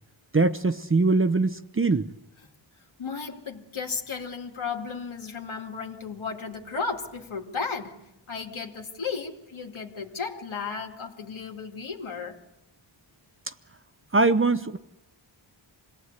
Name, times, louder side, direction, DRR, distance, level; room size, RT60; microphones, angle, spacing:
voice 1, 0.3-2.1 14.1-14.8, right 3 dB, 25° right, 0.8 m, -22 dB
voice 2, 3.0-8.0 8.3-12.4, left 5 dB, 70° left, 2.7 m, -34 dB
26.5 x 18.5 x 8.3 m
wide cardioid pair, 90°, 49 cm